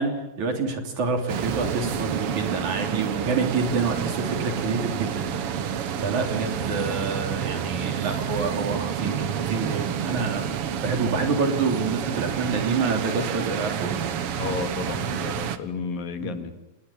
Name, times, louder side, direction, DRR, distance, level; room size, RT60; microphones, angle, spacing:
voice 1, 0.0-5.2 6.0-14.1 16.2-16.4, right 4 dB, 50° right, 4 dB, 4.4 m, -27 dB
sound 1, 1.3-15.6, right 8 dB, 70° right, 1.4 m, -29 dB
voice 2, 14.4-16.5, left 5 dB, 70° left, 8 dB, 3.5 m, -32 dB
29.0 x 19.5 x 8.6 m, 0.95 s
omnidirectional pair, 4.4 m